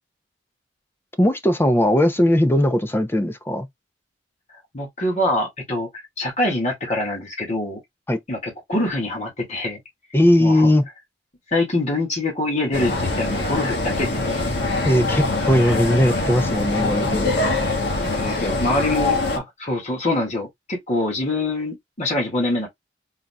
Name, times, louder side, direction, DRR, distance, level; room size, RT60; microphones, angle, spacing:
voice 1, 1.2-3.7 8.1-8.2 10.1-10.8 14.8-17.3, left 1 dB, 10° left, 0.5 m, -18 dB
voice 2, 4.7-5.9 6.2-7.8 8.3-9.8 10.4-10.7 11.5-14.4 18.0-22.7, left 1 dB, 40° left, 1.8 m, -25 dB
sound 1, 12.7-19.4, left 2 dB, 60° left, 1.4 m, -23 dB
4.0 x 3.6 x 2.2 m
head